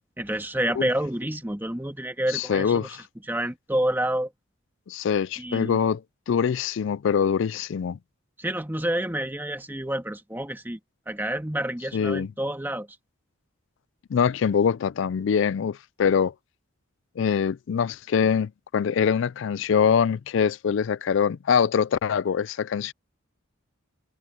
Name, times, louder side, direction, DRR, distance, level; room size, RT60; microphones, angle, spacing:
voice 1, 0.0-2.9 3.3-4.3 5.4-5.8 8.4-10.8 11.1-12.9, right 1 dB, 10° right, 1.6 m, -28 dB
voice 2, 2.3-3.0 4.9-6.0 6.3-8.0 11.9-12.3 14.1-16.3 17.2-22.9, left 7 dB, 60° left, 0.3 m, -24 dB
head